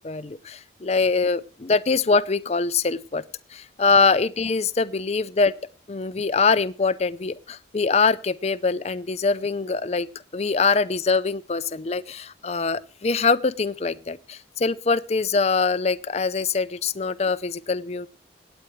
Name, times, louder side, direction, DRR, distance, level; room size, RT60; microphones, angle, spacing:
voice 1, 0.0-3.2 3.5-5.5 5.9-10.1 10.3-18.1, left 4 dB, 35° left, 15 dB, 0.5 m, -23 dB
25.5 x 9.0 x 3.1 m, 0.35 s
head